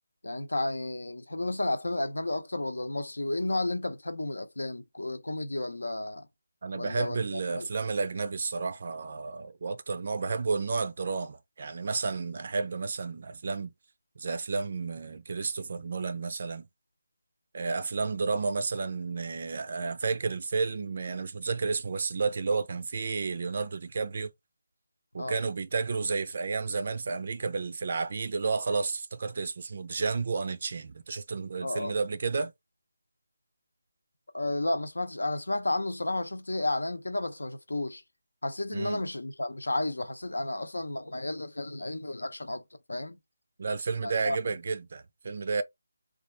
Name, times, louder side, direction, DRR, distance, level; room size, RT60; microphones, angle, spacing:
voice 1, 0.2-6.3 6.7-7.7 25.2-25.4 31.6-31.9 34.3-38.0 38.4-42.6 42.9-43.2 44.0-44.4, left 2 dB, 85° left, 0.6 m, -32 dB
voice 2, 6.6-13.7 14.2-16.7 17.5-24.3 25.1-32.5 38.7-39.0 43.6-45.6, right 4 dB, 50° right, 0.4 m, -31 dB
3.3 x 2.3 x 3.2 m
figure-of-eight pair, 160°, 0 cm